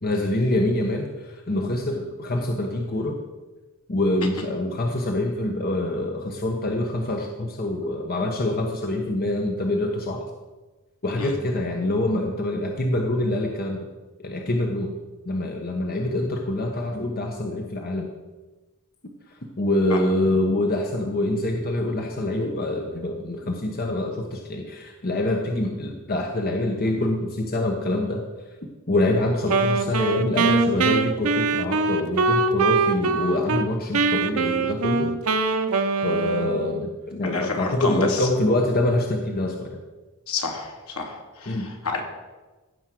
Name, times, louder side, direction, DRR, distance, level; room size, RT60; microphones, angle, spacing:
voice 1, 0.0-3.2 3.9-10.2 11.0-13.9 14.2-14.9 15.2-18.1 19.6-28.2 28.9-35.2 36.0-39.8 41.5-41.7, left 1 dB, 45° left, 2 dB, 1.2 m, -25 dB
Wind instrument woodwind instrument, 29.5-33.7 33.9-36.9, right 4 dB, 75° right, 0.8 m, -23 dB
voice 2, 37.2-38.3 40.3-42.0, left 3 dB, 80° left, 1 dB, 2.6 m, -29 dB
16.0 x 5.4 x 7.6 m, 1.2 s
head